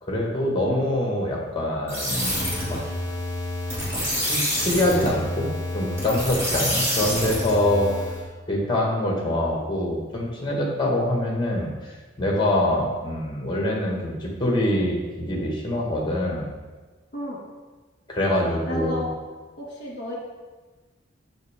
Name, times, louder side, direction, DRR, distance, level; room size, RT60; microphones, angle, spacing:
voice 1, 0.0-2.8 3.9-8.1 8.5-16.5 18.1-19.1, left 1 dB, 25° left, -1 dB, 1.6 m, -25 dB
sound 1, 1.9-8.2, equal, 15° right, 2.5 m, -27 dB
voice 2, 18.7-19.1 19.6-20.2, equal, 40° left, -4 dB, 2.0 m, -32 dB
7.9 x 6.4 x 3.6 m, 1.3 s
head